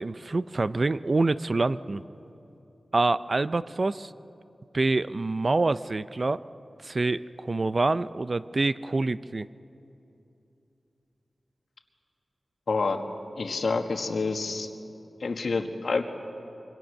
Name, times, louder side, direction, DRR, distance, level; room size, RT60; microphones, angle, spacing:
voice 1, 0.0-2.0 2.9-4.1 4.7-6.4 6.8-9.5, right 3 dB, 40° right, 15 dB, 0.4 m, -26 dB
voice 2, 12.7-13.0 13.4-14.7 15.2-16.0, left 4 dB, 70° left, 5 dB, 1.6 m, -28 dB
26.0 x 24.0 x 6.5 m, 2.9 s
wide cardioid pair, 115°, 0 cm